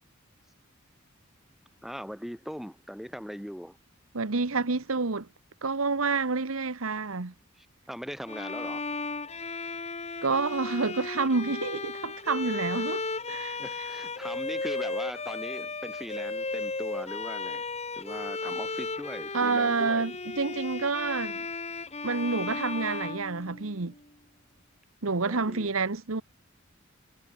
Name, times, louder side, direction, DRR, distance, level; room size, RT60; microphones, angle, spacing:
voice 1, 1.8-3.8 7.6-8.8 13.6-17.7 18.0-20.1 25.2-25.7, equal, ahead, 5.9 m, -40 dB
voice 2, 4.1-5.3 5.6-7.3 10.2-13.9 19.3-21.4 22.0-23.9 25.0-26.2, right 4 dB, 85° right, 1.3 m, -28 dB
Bowed string instrument, 8.3-24.0, left 3 dB, 30° left, 3.8 m, -35 dB
head